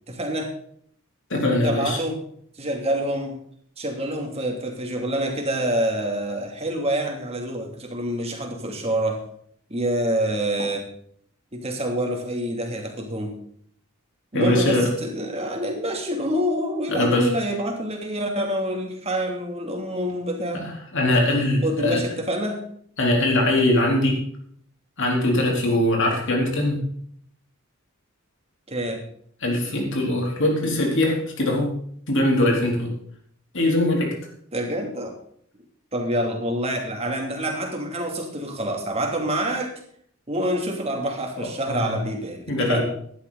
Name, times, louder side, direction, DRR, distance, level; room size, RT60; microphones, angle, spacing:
voice 1, 0.1-0.5 1.6-2.2 2.6-3.4 3.8-9.2 9.7-10.9 11.5-13.4 14.3-20.6 21.6-22.6 28.7-29.0 34.5-35.1 35.9-39.7 40.3-42.8, right 1 dB, 30° right, 2 dB, 2.9 m, -27 dB
voice 2, 1.3-2.0 14.3-14.9 16.9-17.3 20.5-22.0 23.0-24.2 25.0-26.9 29.4-32.9 33.5-34.2 41.6-42.0 42.5-42.8, left 1 dB, 60° left, 0 dB, 3.9 m, -22 dB
16.0 x 11.5 x 4.1 m, 0.63 s
head